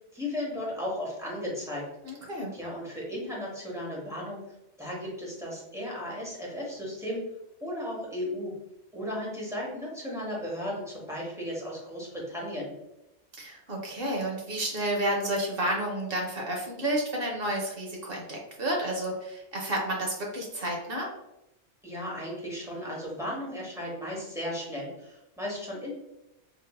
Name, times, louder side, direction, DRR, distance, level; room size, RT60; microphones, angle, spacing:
voice 1, 0.1-1.9 2.5-4.4 4.8-7.2 7.6-8.5 8.9-12.7 21.8-25.9, left 1 dB, 5° right, -5 dB, 0.9 m, -35 dB
voice 2, 2.0-2.5 13.4-21.1, right 1 dB, 60° right, 0 dB, 0.9 m, -31 dB
3.8 x 2.5 x 2.2 m, 0.89 s
omnidirectional pair, 1.2 m